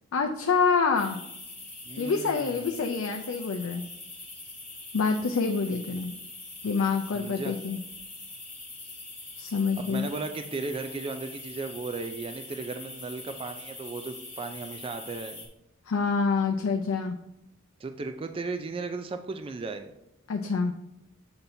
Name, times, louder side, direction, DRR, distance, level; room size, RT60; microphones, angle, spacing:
voice 1, 0.1-1.2 2.0-3.8 4.9-6.1 6.6-7.8 9.4-10.1 15.9-17.2 20.3-20.7, left 5 dB, 65° left, 4 dB, 0.4 m, -26 dB
sound 1, 1.0-15.5, left 2 dB, 10° left, 1.2 m, -43 dB
voice 2, 1.8-2.9 7.1-7.5 9.8-15.5 17.8-19.9, right 3 dB, 25° right, 7 dB, 0.3 m, -36 dB
6.8 x 5.7 x 2.6 m, 0.85 s
head